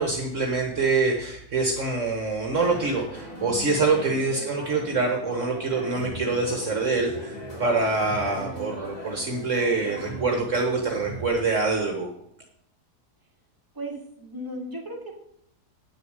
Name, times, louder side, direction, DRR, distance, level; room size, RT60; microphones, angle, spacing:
voice 1, 0.0-12.1, right 3 dB, 50° right, 2 dB, 1.5 m, -25 dB
sound 1, 2.6-11.3, right 1 dB, 25° left, 2.7 m, -38 dB
voice 2, 13.7-15.1, right 1 dB, 15° right, -1 dB, 2.3 m, -36 dB
8.9 x 6.7 x 7.9 m, 0.72 s
omnidirectional pair, 1.7 m